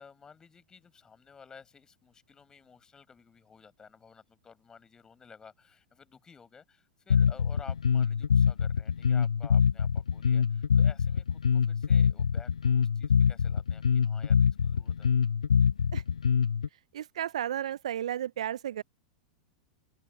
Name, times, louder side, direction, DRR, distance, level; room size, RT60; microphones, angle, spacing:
voice 1, 0.0-15.2, left 6 dB, 20° left, 7.2 m, -53 dB
Bass guitar, 7.1-16.7, left 6 dB, 75° left, 0.7 m, -24 dB
voice 2, 16.9-18.8, right 10 dB, 65° right, 0.4 m, -33 dB
open air
figure-of-eight pair, 95°, 4 cm